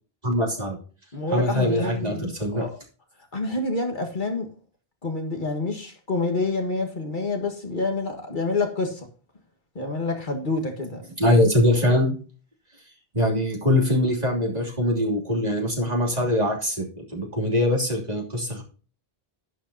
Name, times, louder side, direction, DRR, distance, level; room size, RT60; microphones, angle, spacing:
voice 1, 0.2-0.8 1.3-2.6 11.2-12.1 13.1-18.6, left 1 dB, 40° right, 3.2 m, -22 dB
voice 2, 1.1-2.8 3.3-4.5 5.0-9.1 9.8-11.1, left 3 dB, 50° left, 1.8 m, -28 dB
11.5 x 10.5 x 2.8 m
omnidirectional pair, 1.1 m